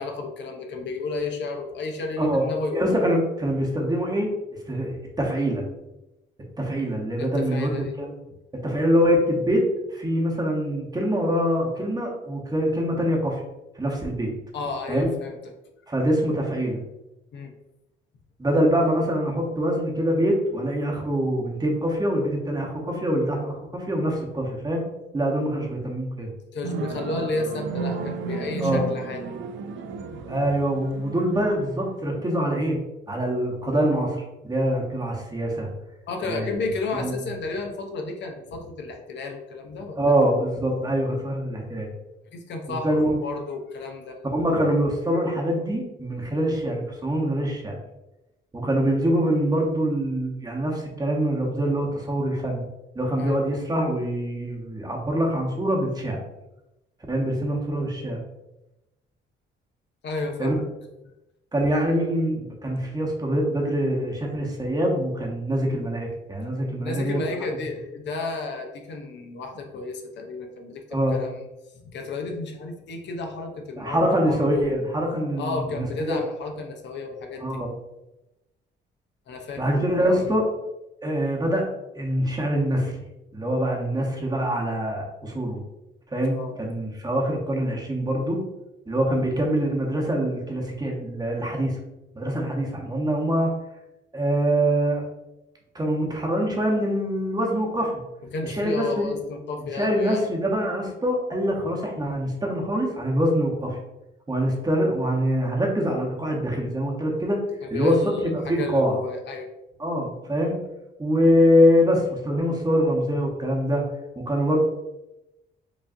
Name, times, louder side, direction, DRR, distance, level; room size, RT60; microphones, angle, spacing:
voice 1, 0.0-3.0 7.2-8.0 14.5-15.4 17.3-17.5 26.5-29.2 36.1-40.1 42.3-44.2 53.2-53.3 60.0-60.5 66.8-71.4 71.9-74.7 75.4-77.6 79.3-80.4 86.3-86.5 98.3-100.2 107.6-109.5, left 3 dB, 65° left, 3 dB, 0.6 m, -32 dB
voice 2, 2.7-4.3 4.7-5.6 6.6-8.1 8.6-9.6 9.9-13.4 13.8-14.3 14.9-15.1 15.9-16.8 18.4-24.8 25.1-26.3 28.6-28.9 30.3-32.8 33.1-35.7 36.2-36.6 36.9-37.2 40.0-41.9 42.7-43.1 44.2-47.8 48.5-52.7 52.9-56.2 57.1-58.2 60.4-60.5 61.5-67.2 70.9-71.3 73.8-76.2 77.4-77.7 79.6-80.5 81.0-81.7 81.9-82.9 83.3-85.6 86.1-88.4 88.9-91.8 92.1-93.5 94.1-95.0 95.7-97.9 98.4-99.1 99.7-103.8 104.3-107.4 107.7-109.0 109.8-110.6 111.0-113.8 114.2-114.6, equal, 20° right, 0 dB, 0.9 m, -24 dB
sound 1, 26.6-32.2, right 5 dB, 70° right, 0.4 m, -33 dB
4.8 x 2.5 x 2.5 m, 0.95 s
cardioid pair, 90°, 20 cm